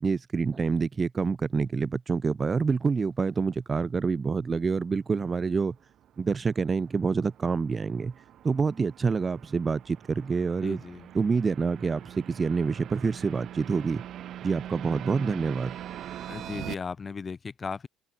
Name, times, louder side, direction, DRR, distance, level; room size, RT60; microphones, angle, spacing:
voice 1, 0.0-5.8 6.2-8.1 8.4-10.8 11.1-14.0 14.4-15.8, right 5 dB, 25° right, 0.4 m, -27 dB
sound 1, 5.5-16.7, right 11 dB, 50° right, 3.5 m, -43 dB
voice 2, 10.6-11.1 16.3-17.9, left 5 dB, 25° left, 1.5 m, -36 dB
cardioid pair, 120°, 0 cm